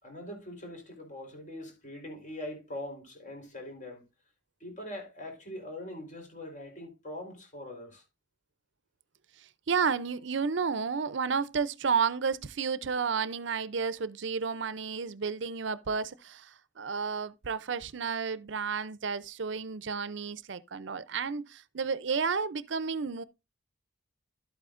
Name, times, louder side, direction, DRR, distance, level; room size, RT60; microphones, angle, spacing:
voice 1, 0.0-4.1 4.6-8.0, left 1 dB, 40° left, 4.0 m, -42 dB
voice 2, 9.4-23.2, right 5 dB, 65° right, 0.6 m, -32 dB
12.0 x 8.4 x 2.5 m
head